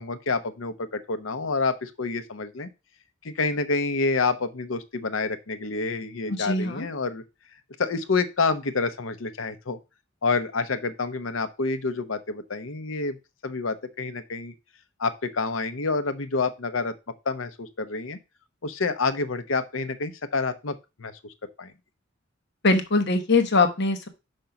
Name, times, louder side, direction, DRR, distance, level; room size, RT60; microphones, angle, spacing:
voice 1, 0.0-2.7 3.2-7.2 7.8-9.8 10.2-13.2 13.4-14.5 15.0-16.9 17.2-18.2 18.6-21.3 21.6-21.7, left 4 dB, 85° left, 11 dB, 0.9 m, -28 dB
voice 2, 6.3-6.9 22.6-24.1, left 3 dB, 60° left, 8 dB, 1.1 m, -22 dB
5.4 x 5.2 x 5.8 m, 0.27 s
head